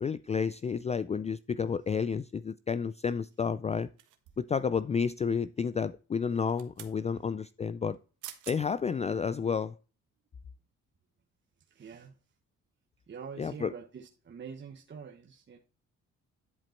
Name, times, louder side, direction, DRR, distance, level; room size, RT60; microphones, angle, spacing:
voice 1, 0.0-3.9 4.4-8.0 8.5-9.7 13.4-13.7, left 6 dB, 25° left, 0.3 m, -31 dB
sound 1, 4.0-4.6 6.3-7.0 7.9-8.0 8.2-8.6 9.1-9.3, right 12 dB, 85° right, 1.4 m, -47 dB
voice 2, 11.7-12.1 13.1-15.6, right 6 dB, 40° right, 1.1 m, -45 dB
11.0 x 5.1 x 4.3 m
cardioid pair, 90°, 30 cm